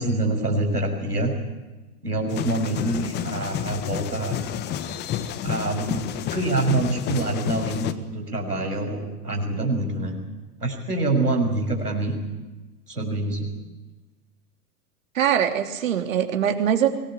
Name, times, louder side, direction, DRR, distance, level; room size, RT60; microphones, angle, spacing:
voice 1, 0.0-1.3 2.0-4.4 5.4-6.0 6.3-10.2 10.6-12.2 12.9-13.5, right 2 dB, 85° right, 3 dB, 6.5 m, -25 dB
sound 1, 2.3-7.9, left 10 dB, 20° left, 1.4 m, -30 dB
voice 2, 15.1-16.9, right 9 dB, 60° right, 6 dB, 3.2 m, -22 dB
24.5 x 19.5 x 8.8 m, 1.1 s
figure-of-eight pair, 105°, 45 cm